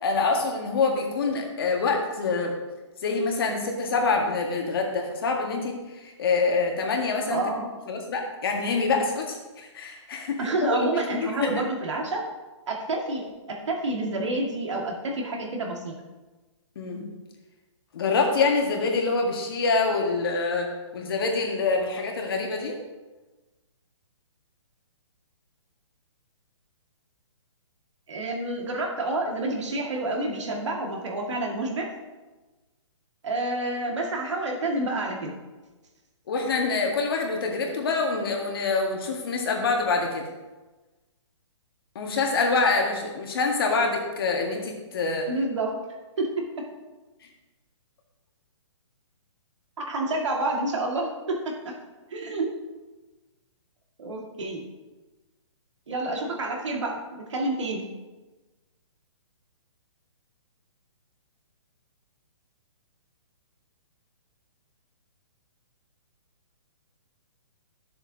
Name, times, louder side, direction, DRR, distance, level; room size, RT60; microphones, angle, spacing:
voice 1, 0.0-2.5 3.0-5.7 6.0-7.4 7.9-11.6 16.8-17.1 17.9-22.8 36.3-40.3 42.0-45.3, left 4 dB, 50° left, 1 dB, 1.7 m, -26 dB
voice 2, 7.3-7.7 10.4-12.2 12.7-16.0 28.1-31.9 33.2-35.3 45.3-45.8 46.2-46.7 49.8-51.7 52.1-52.5 54.0-54.7 55.9-57.0 57.3-57.8, right 2 dB, 70° right, 0 dB, 2.0 m, -29 dB
11.5 x 7.3 x 2.8 m, 1.2 s
hypercardioid pair, 165°, 16 cm